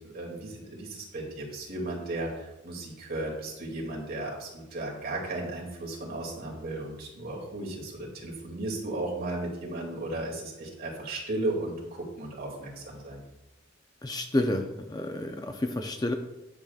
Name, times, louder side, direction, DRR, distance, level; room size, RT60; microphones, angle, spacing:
voice 1, 0.1-13.2, right 2 dB, 45° right, -3 dB, 2.3 m, -35 dB
voice 2, 14.0-16.1, left 1 dB, 20° left, 5 dB, 0.5 m, -30 dB
10.5 x 6.9 x 2.4 m, 0.94 s
head